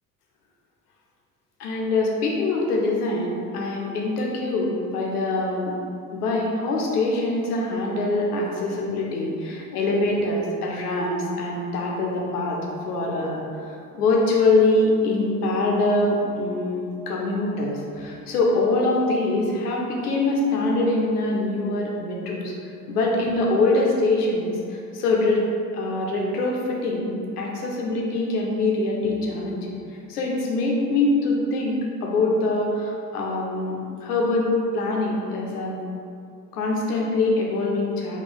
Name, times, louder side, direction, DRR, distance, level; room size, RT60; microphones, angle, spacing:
voice 1, 1.6-5.7 6.1-12.6 12.9-13.4 13.9-22.5 22.9-25.4 25.7-29.8 30.1-35.8 36.5-38.2, left 2 dB, 80° left, -2 dB, 0.7 m, -24 dB
4.1 x 2.4 x 3.8 m, 2.4 s
figure-of-eight pair, 55°, 46 cm